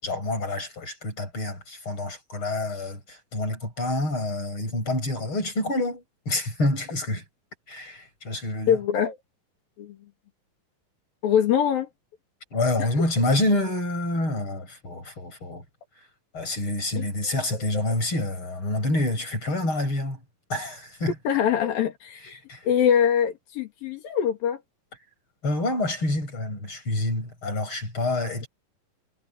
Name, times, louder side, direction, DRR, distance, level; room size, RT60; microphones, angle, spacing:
voice 1, 0.0-7.2 7.7-8.8 12.5-15.6 16.3-20.2 20.5-21.1 22.2-22.6 25.4-28.5, left 2 dB, 35° left, 9.0 m, -27 dB
voice 2, 8.7-9.2 9.8-10.0 11.2-11.9 12.8-12.9 17.0-17.1 21.3-22.3 22.7-24.6, left 8 dB, 90° left, 4.1 m, -23 dB
omnidirectional pair, 4.0 m